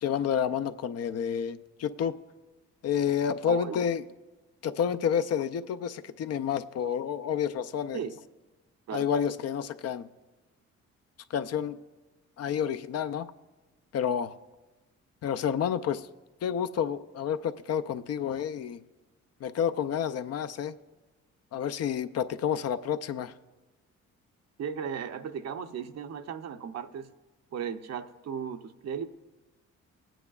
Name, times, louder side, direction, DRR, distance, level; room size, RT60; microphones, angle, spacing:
voice 1, 0.0-2.1 2.8-4.0 4.6-8.0 8.9-10.1 11.3-11.8 12.4-13.3 13.9-14.3 15.2-16.1 16.4-18.8 19.4-20.7 21.5-23.3, left 8 dB, 55° left, 11 dB, 0.5 m, -29 dB
voice 2, 3.5-3.8 7.9-8.2 8.9-9.1 24.6-27.1 27.5-29.0, right 7 dB, 60° right, 8 dB, 0.7 m, -36 dB
21.0 x 9.0 x 2.4 m, 1.2 s
cardioid pair, 90°, 30 cm